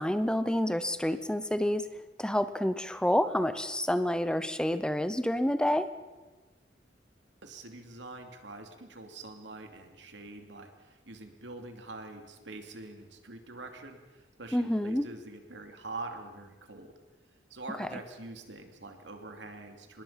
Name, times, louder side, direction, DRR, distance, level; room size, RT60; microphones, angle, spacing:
voice 1, 0.0-1.9 2.2-5.9 14.5-15.1 17.8-18.0, equal, 5° left, 11 dB, 0.8 m, -28 dB
voice 2, 7.4-16.9 17.5-20.0, right 2 dB, 90° right, 5 dB, 2.7 m, -45 dB
26.0 x 20.5 x 5.8 m, 1.2 s
head